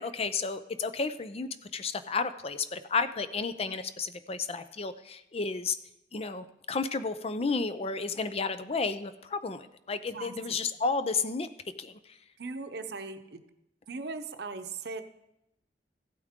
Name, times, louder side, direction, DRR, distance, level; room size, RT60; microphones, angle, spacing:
voice 1, 0.0-5.8 6.1-11.5 11.8-12.2, left 4 dB, 35° left, 11 dB, 0.5 m, -32 dB
voice 2, 10.1-10.6 12.4-13.4 13.9-15.0, right 4 dB, 65° right, 8 dB, 0.8 m, -39 dB
15.5 x 8.4 x 3.7 m, 0.86 s
head